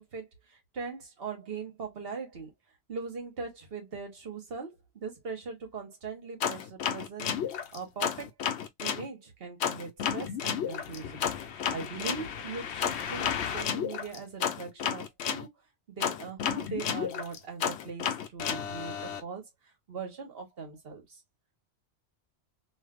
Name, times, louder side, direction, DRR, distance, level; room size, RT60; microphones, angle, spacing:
voice 1, 0.0-2.5 2.9-7.3 7.7-8.3 8.8-11.3 11.7-15.5 15.9-19.4 19.9-21.2, right 5 dB, 60° right, 1.3 m, -40 dB
sound 1, 6.4-9.0 9.6-15.4 16.0-19.2, left 8 dB, 70° left, 0.9 m, -32 dB
3.2 x 2.6 x 2.3 m
omnidirectional pair, 1.2 m